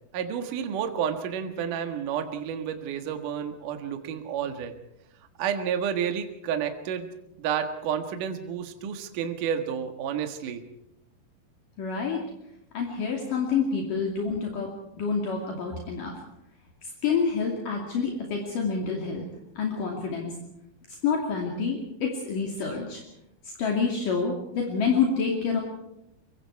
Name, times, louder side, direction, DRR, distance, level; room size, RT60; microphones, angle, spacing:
voice 1, 0.1-4.7 5.4-7.1 7.4-10.6, right 8 dB, 65° right, 6 dB, 2.9 m, -30 dB
voice 2, 11.8-12.2 12.7-14.7 15.0-16.1 17.0-19.2 19.6-20.3 21.0-23.0 23.6-25.6, left 5 dB, 60° left, 0 dB, 4.1 m, -27 dB
25.0 x 23.0 x 4.7 m, 0.84 s
omnidirectional pair, 4.4 m